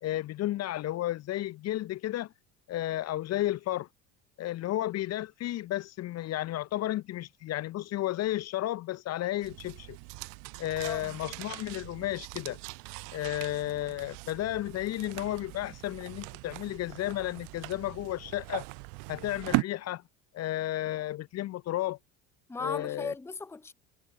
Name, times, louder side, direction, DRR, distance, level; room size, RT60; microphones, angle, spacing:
voice 1, 0.0-2.3 2.7-3.9 4.4-10.0 10.6-12.6 13.1-18.6 19.1-20.0 20.3-22.0 22.6-23.1, left 14 dB, 35° left, 0.7 m, -33 dB
sound 1, 9.4-19.6, right 34 dB, 50° right, 0.5 m, -39 dB
voice 2, 10.8-11.2 22.5-23.7, left 4 dB, 5° left, 0.8 m, -37 dB
figure-of-eight pair, 60°, 42 cm